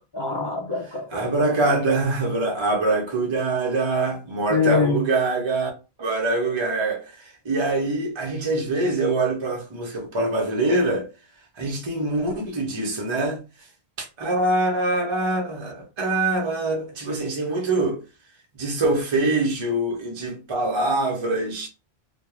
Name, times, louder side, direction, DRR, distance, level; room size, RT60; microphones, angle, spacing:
voice 1, 0.0-1.8 4.5-5.0, left 4 dB, 35° left, 0.5 m, -25 dB
voice 2, 1.1-5.7 6.0-11.1 11.6-13.4 14.0-18.0 18.5-21.7, right 2 dB, 35° right, 0.5 m, -24 dB
2.3 x 2.1 x 3.0 m
omnidirectional pair, 1.1 m